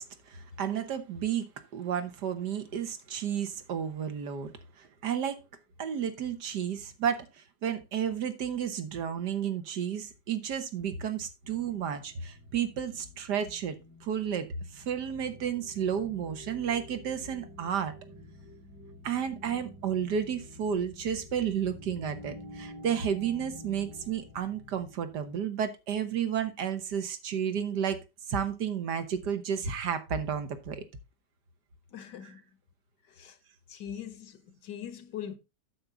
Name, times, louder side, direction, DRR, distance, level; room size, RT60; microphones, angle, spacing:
voice 1, 0.0-5.5 5.8-17.9 19.0-30.8, right 8 dB, 75° right, 1.8 m, -32 dB
sound 1, 11.4-25.3, left 1 dB, 90° right, 2.7 m, -49 dB
voice 2, 31.9-32.4 33.1-33.4 33.7-35.4, left 9 dB, 80° left, 1.7 m, -41 dB
8.7 x 7.1 x 3.8 m
omnidirectional pair, 1.8 m